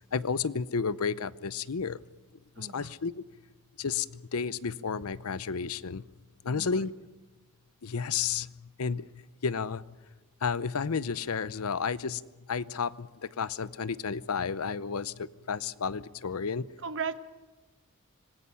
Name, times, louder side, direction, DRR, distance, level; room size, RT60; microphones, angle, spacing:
voice 1, 0.1-2.0 2.6-3.2 3.8-6.0 6.4-6.9 7.8-8.5 8.8-9.1 9.4-9.9 10.4-12.2 12.5-16.6, left 5 dB, 80° left, 17 dB, 0.7 m, -32 dB
voice 2, 2.6-2.9 6.4-6.9 16.8-17.2, right 5 dB, 60° right, 11 dB, 1.1 m, -36 dB
26.5 x 20.0 x 5.7 m, 1.2 s
head